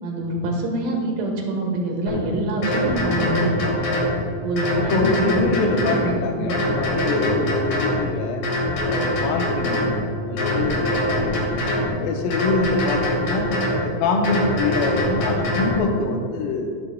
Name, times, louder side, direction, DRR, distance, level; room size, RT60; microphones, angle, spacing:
voice 1, 0.0-3.5 4.4-5.3 5.7-6.6, right 2 dB, 75° right, 0 dB, 3.5 m, -26 dB
sound 1, 2.1-2.2 2.6-4.1 4.6-6.1 6.5-8.0 8.4-10.0 10.4-11.9 12.3-13.8 14.2-15.8, left 1 dB, 60° left, 4.0 m, -23 dB
voice 2, 4.8-8.4 8.8-11.6 12.0-13.5 13.8-16.8, left 3 dB, 85° left, 3 dB, 2.6 m, -25 dB
15.5 x 11.0 x 2.3 m, 2.2 s
omnidirectional pair, 4.1 m